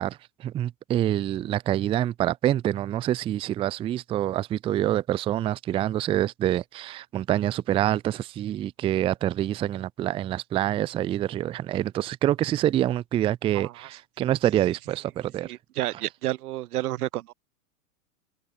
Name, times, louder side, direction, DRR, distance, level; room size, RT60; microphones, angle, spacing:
voice 1, 0.0-15.5, right 12 dB, 15° right, 0.4 m, -26 dB
voice 2, 15.4-17.3, right 15 dB, 80° right, 0.7 m, -30 dB
hypercardioid pair, 120°, 45 cm